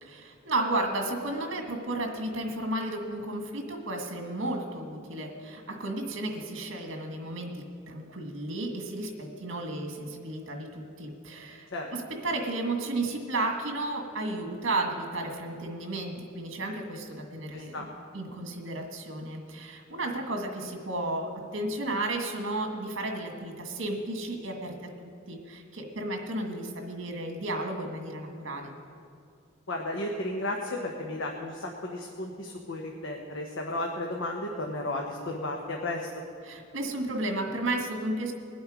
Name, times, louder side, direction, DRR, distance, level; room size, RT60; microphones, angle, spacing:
voice 1, 0.0-17.9 18.1-28.7 36.5-38.3, right 2 dB, 75° right, 3 dB, 1.8 m, -33 dB
voice 2, 17.5-17.9 29.7-36.1, left 1 dB, 80° left, 0 dB, 1.2 m, -34 dB
21.0 x 7.9 x 5.1 m, 2.4 s
head